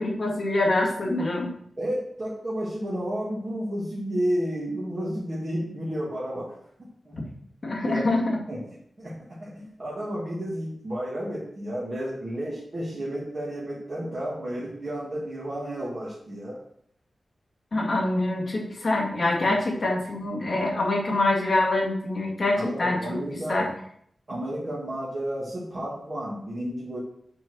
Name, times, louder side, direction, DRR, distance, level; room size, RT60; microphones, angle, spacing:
voice 1, 0.0-1.5 7.6-8.4 17.7-23.0 23.5-23.7, left 2 dB, 35° left, -2 dB, 2.2 m, -25 dB
voice 2, 1.8-6.5 6.8-7.1 7.8-8.1 8.5-16.6 22.5-23.6 24.3-27.0, equal, 30° right, -7 dB, 2.1 m, -32 dB
7.7 x 4.5 x 6.3 m, 0.66 s
wide cardioid pair, 175°, 0 cm